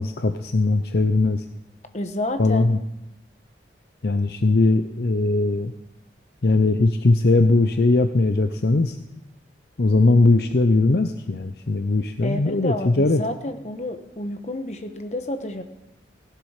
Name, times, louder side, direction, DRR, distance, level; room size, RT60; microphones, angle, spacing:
voice 1, 0.0-1.4 2.4-2.8 4.0-5.7 6.4-9.0 9.8-13.2, left 2 dB, 60° left, 8 dB, 0.6 m, -19 dB
voice 2, 1.9-2.6 12.2-15.6, left 1 dB, 40° left, 7 dB, 1.1 m, -30 dB
16.5 x 11.5 x 4.9 m, 0.90 s
head